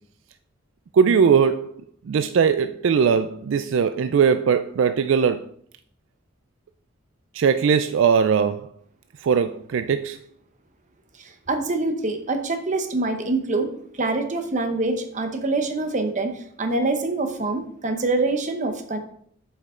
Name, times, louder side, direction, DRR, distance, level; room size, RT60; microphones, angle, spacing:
voice 1, 0.9-5.5 7.3-8.7 9.2-10.2, right 6 dB, 70° right, 0.3 m, -20 dB
voice 2, 11.2-19.0, right 2 dB, 40° right, 0.9 m, -25 dB
7.8 x 5.1 x 3.7 m
head